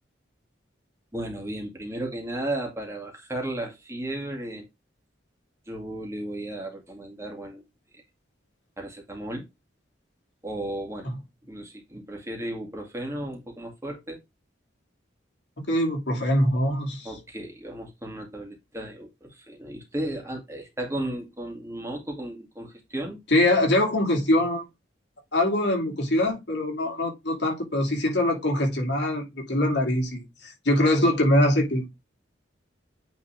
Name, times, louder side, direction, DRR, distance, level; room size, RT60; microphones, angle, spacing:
voice 1, 1.1-4.7 5.7-7.6 8.8-9.5 10.4-11.1 11.5-14.2 17.0-23.2, right 1 dB, 15° right, 2.1 m, -34 dB
voice 2, 15.7-17.1 23.3-24.7 25.3-31.9, left 1 dB, 60° left, 2.7 m, -23 dB
9.0 x 3.9 x 3.4 m
head